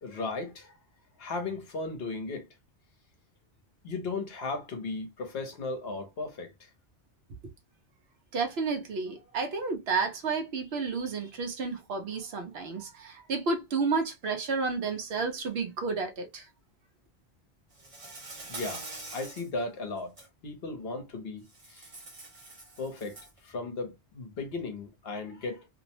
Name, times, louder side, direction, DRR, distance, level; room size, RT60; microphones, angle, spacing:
voice 1, 0.0-0.8 1.2-2.5 3.8-6.7 18.5-18.9 19.1-21.4 21.7-21.9 22.8-23.2 23.4-25.7, left 3 dB, 60° left, 0.9 m, -36 dB
voice 2, 8.3-16.5, right 4 dB, 65° right, 0.8 m, -31 dB
Insect, 17.8-19.5 20.0-20.3 21.5-23.4, right 3 dB, 35° right, 0.7 m, -44 dB
2.6 x 2.0 x 2.7 m
omnidirectional pair, 1.2 m